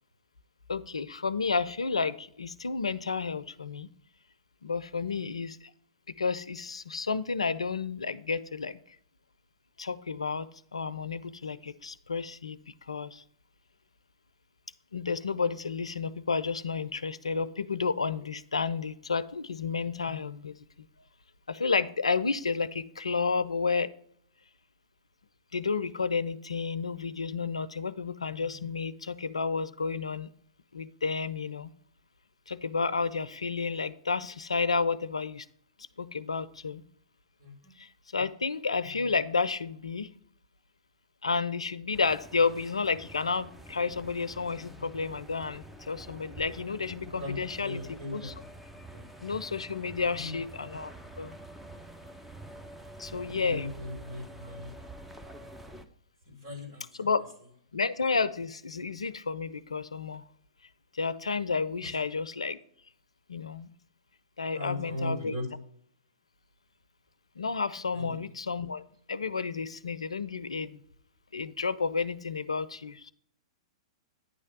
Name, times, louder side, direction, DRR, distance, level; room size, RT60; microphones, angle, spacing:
voice 1, 0.7-3.9 4.6-5.6 6.2-8.8 9.8-10.5 10.7-12.6 12.9-13.2 14.9-20.6 21.5-23.9 25.5-30.3 30.7-31.7 32.5-35.5 36.0-36.8 37.8-40.1 41.2-48.3 49.2-51.4 53.0-53.7 57.0-57.2 57.7-60.2 60.9-62.6 63.3-63.7 64.4-65.3 67.4-68.8 69.1-70.8 71.3-73.1, left 4 dB, 85° left, 16 dB, 0.5 m, -31 dB
voice 2, 37.4-37.7 47.2-48.3 48.9-49.2 50.0-50.4 53.0-54.7 56.3-57.1 61.8-62.0 64.5-65.5 67.9-68.2, left 1 dB, 55° right, 1 dB, 3.7 m, -39 dB
sound 1, 41.9-55.8, right 1 dB, 5° right, 0.7 m, -47 dB
9.7 x 3.3 x 6.6 m, 0.63 s
figure-of-eight pair, 110°, 3 cm